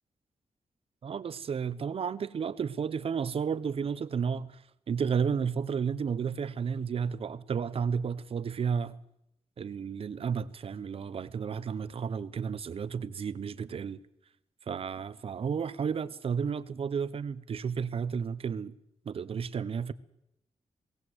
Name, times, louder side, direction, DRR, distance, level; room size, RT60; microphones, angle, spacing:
voice 1, 1.0-9.0 9.6-14.0 14.7-18.8 19.0-19.9, right 6 dB, 55° right, 0.8 m, -32 dB
18.5 x 18.0 x 8.0 m
wide cardioid pair, 165°, 12 cm